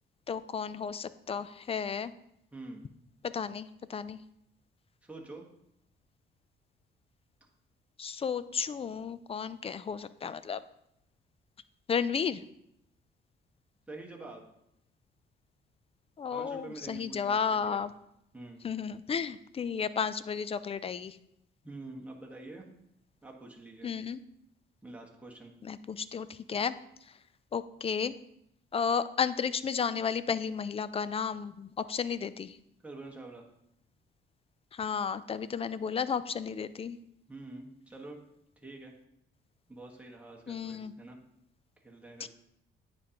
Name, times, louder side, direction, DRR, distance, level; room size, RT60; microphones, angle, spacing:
voice 1, 0.3-2.1 3.3-4.2 8.0-10.6 11.9-12.4 16.2-17.9 18.6-21.2 23.8-24.2 25.6-26.7 27.5-28.1 28.7-32.6 34.7-37.0 40.5-40.9 42.2-42.3, left 6 dB, 30° left, 15 dB, 0.4 m, -33 dB
voice 2, 2.5-2.8 5.0-5.4 13.9-14.4 16.3-17.8 18.3-18.6 21.6-22.7 23.2-23.9 24.8-25.5 32.8-33.4 37.3-38.2 38.6-38.9 39.7-41.2 41.8-42.3, right 2 dB, 5° right, -1 dB, 1.4 m, -46 dB
9.4 x 5.1 x 2.9 m, 0.79 s
cardioid pair, 90°, 20 cm